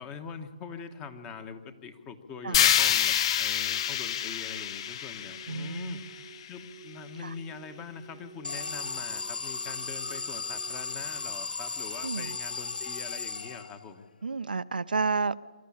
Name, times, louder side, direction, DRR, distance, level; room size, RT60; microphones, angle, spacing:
voice 1, 0.0-6.1 6.5-14.1, left 6 dB, 20° left, 1.4 m, -43 dB
sound 1, 2.5-6.6, left 10 dB, 40° left, 0.7 m, -27 dB
sound 2, 3.0-11.2, right 7 dB, 65° left, 6.8 m, -53 dB
voice 2, 5.5-6.0 7.2-7.3 12.0-12.4 14.2-15.4, right 4 dB, 85° right, 0.7 m, -31 dB
Alarm, 8.4-14.0, left 4 dB, 85° left, 0.7 m, -36 dB
25.0 x 13.5 x 8.7 m
hypercardioid pair, 150°, 5 cm